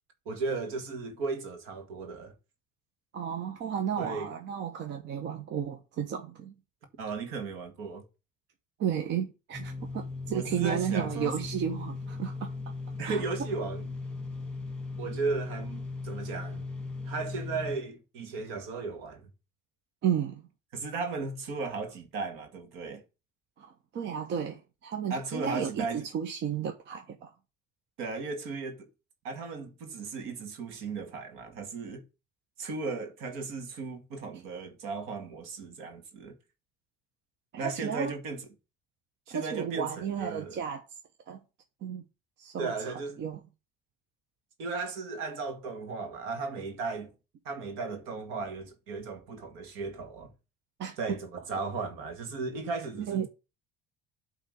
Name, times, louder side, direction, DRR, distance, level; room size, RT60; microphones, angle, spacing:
voice 1, 0.3-2.3 4.0-4.3 7.0-8.0 10.3-11.4 13.0-13.9 15.0-16.7 17.1-19.3 20.7-23.0 25.1-26.1 28.0-28.9 29.2-32.0 32.6-36.4 37.6-38.4 39.3-40.6 42.6-43.2 44.6-47.1 47.5-50.3 51.0-53.3, right 4 dB, 80° right, 2.0 m, -36 dB
voice 2, 3.1-6.5 8.8-12.5 13.0-13.2 20.0-20.5 23.6-27.3 37.5-38.1 39.3-40.9 41.3-41.4 41.8-42.0 42.4-43.4 50.8-51.0 51.8-51.9 53.1-53.3, right 8 dB, 60° right, 1.1 m, -33 dB
sound 1, 9.5-17.8, left 3 dB, 5° left, 1.9 m, -38 dB
8.9 x 3.6 x 6.4 m
supercardioid pair, 90°, 21 cm